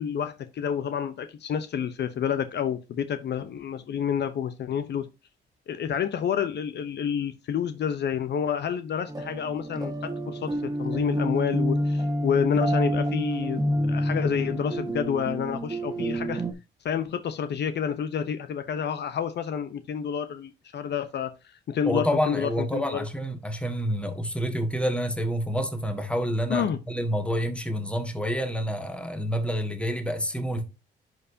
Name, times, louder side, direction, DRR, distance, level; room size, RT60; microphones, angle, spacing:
voice 1, 0.0-5.1 5.7-16.4 16.8-21.3 21.7-23.1 26.5-26.8, left 8 dB, 60° left, 0.8 m, -29 dB
sound 1, 9.1-16.5, equal, 20° right, 1.4 m, -28 dB
voice 2, 21.8-30.6, equal, 5° left, 1.6 m, -28 dB
10.5 x 4.6 x 2.7 m
cardioid pair, 90°, 20 cm